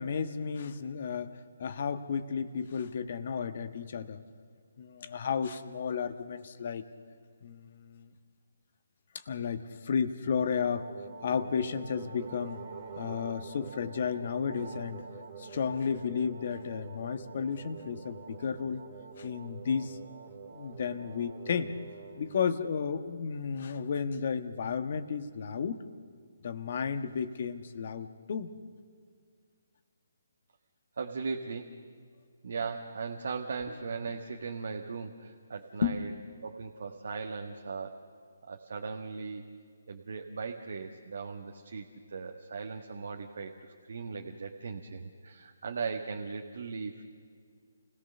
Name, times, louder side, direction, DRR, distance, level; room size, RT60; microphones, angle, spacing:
voice 1, 0.0-4.2 4.8-6.8 7.4-8.1 9.3-10.9 11.2-12.6 13.0-15.0 15.4-18.8 19.2-20.0 20.5-21.7 22.2-25.8 26.4-28.5 35.8-36.0, left 6 dB, 50° left, 10 dB, 1.3 m, -33 dB
sound 1, 10.2-22.5, right 6 dB, 40° right, 2.6 m, -46 dB
voice 2, 31.0-31.7 32.4-36.1 36.4-38.0 38.5-39.4 39.9-47.0, right 4 dB, 65° right, 3 dB, 1.5 m, -38 dB
29.0 x 17.5 x 6.8 m, 2.1 s
figure-of-eight pair, 150°, 0 cm